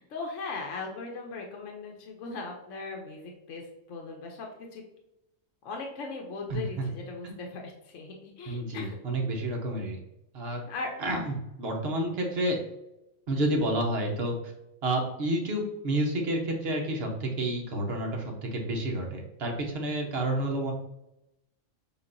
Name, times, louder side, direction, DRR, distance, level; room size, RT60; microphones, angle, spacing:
voice 1, 0.0-3.6 3.9-4.5 4.7-4.8 5.6-9.0 10.7-10.9, left 3 dB, 70° left, 1 dB, 1.0 m, -38 dB
voice 2, 6.5-6.8 7.2-7.3 8.5-10.0 10.3-10.6 11.0-12.6 13.3-14.3 14.8-20.7, right 1 dB, 55° right, 1 dB, 1.1 m, -30 dB
6.9 x 2.5 x 2.6 m, 0.89 s
omnidirectional pair, 1.3 m